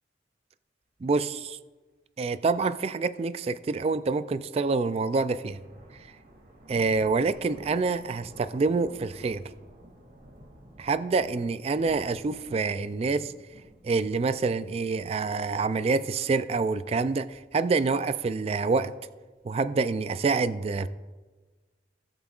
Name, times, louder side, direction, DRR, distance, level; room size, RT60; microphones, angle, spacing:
voice 1, 1.0-1.6 2.2-5.6 6.7-9.4 10.8-13.3 13.8-18.9 19.4-20.9, right 4 dB, 35° right, 13 dB, 0.3 m, -27 dB
sound 1, 4.3-20.2, right 1 dB, 50° right, 2.1 m, -53 dB
17.5 x 7.9 x 2.4 m, 1.3 s
head